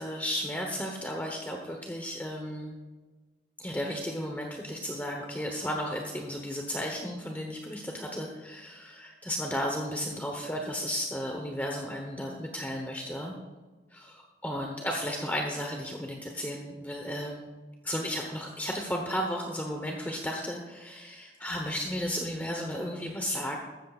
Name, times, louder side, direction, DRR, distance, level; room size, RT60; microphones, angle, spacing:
voice 1, 0.0-2.8 3.6-13.4 13.9-17.5 17.8-23.6, equal, 10° left, 1 dB, 1.0 m, -34 dB
14.5 x 13.0 x 2.5 m, 1.3 s
head